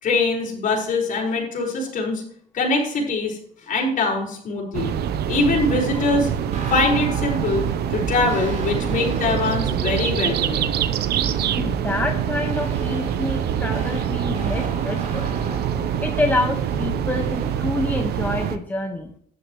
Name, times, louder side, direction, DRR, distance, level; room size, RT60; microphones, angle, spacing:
voice 1, 0.0-2.2 2.5-3.4 3.7-5.0 5.3-6.3 6.7-7.7 7.9-10.8, left 3 dB, 50° left, -1 dB, 5.1 m, -23 dB
sound 1, 4.7-18.6, right 9 dB, 75° right, 0.9 m, -25 dB
sound 2, 5.6-17.5, right 3 dB, 45° right, 3.5 m, -35 dB
voice 2, 11.6-15.2 16.0-19.1, left 2 dB, 10° left, 2 dB, 1.4 m, -27 dB
13.5 x 10.5 x 3.2 m, 0.63 s
cardioid pair, 110°, 17 cm